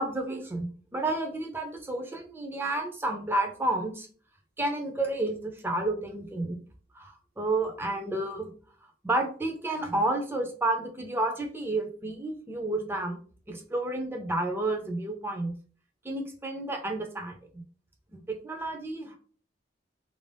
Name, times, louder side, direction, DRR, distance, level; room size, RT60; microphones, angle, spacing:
voice 1, 0.0-4.1 4.6-6.6 6.9-8.5 9.0-13.2 13.5-15.5 16.0-17.4 18.3-19.2, right 2 dB, 10° right, 3 dB, 0.5 m, -30 dB
2.5 x 2.1 x 3.3 m, 0.43 s
head